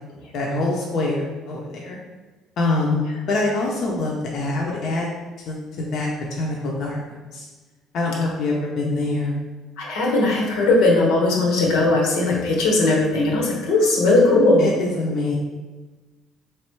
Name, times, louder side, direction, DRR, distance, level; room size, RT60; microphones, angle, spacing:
voice 1, 0.3-2.0 2.6-5.1 5.5-7.5 7.9-9.4 14.6-15.3, left 2 dB, 50° left, -2 dB, 0.6 m, -25 dB
voice 2, 9.8-14.7, left 2 dB, 90° left, -2 dB, 1.2 m, -18 dB
3.6 x 3.2 x 4.5 m, 1.3 s
cardioid pair, 150°, 0 cm